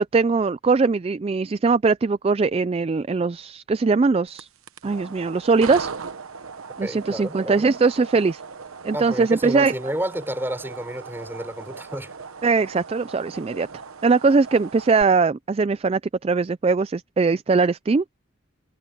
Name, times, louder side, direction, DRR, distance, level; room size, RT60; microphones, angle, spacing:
voice 1, 0.0-4.5 4.8-5.9 6.8-8.4 8.8-9.7 12.4-13.7 14.0-18.0, right 4 dB, 30° right, 0.3 m, -21 dB
sound 1, 4.3-15.0, right 5 dB, 85° right, 1.0 m, -38 dB
voice 2, 6.8-7.7 8.9-12.1, right 1 dB, 10° right, 4.7 m, -30 dB
head